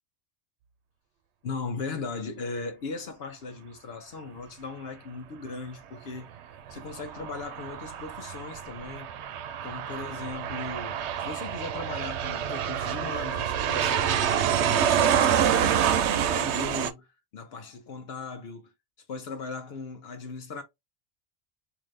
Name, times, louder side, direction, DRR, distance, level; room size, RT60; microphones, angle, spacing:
voice 1, 1.4-6.3 6.7-9.1 9.6-17.1 17.3-18.7 19.0-20.6, left 4 dB, 70° left, 0.9 m, -38 dB
Aircraft, 6.7-16.9, right 9 dB, 85° right, 0.9 m, -27 dB
3.8 x 2.7 x 3.1 m
omnidirectional pair, 1.1 m